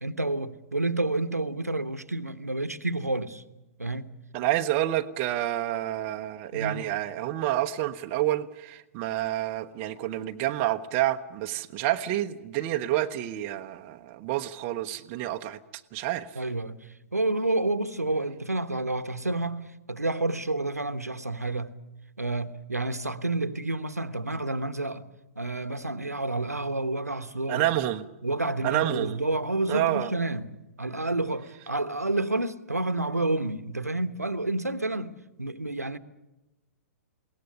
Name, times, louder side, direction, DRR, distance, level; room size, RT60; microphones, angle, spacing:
voice 1, 0.0-3.4 3.8-4.1 6.5-6.8 16.3-16.8 17.1-21.7 22.2-25.1 25.4-27.7 28.2-30.5 30.8-36.0, right 2 dB, 85° right, 1.2 m, -29 dB
voice 2, 4.3-15.6 15.9-16.3 27.5-28.1 28.6-29.2 29.7-30.1, right 14 dB, 30° right, 0.9 m, -28 dB
21.5 x 18.0 x 9.9 m
figure-of-eight pair, 115°, 8 cm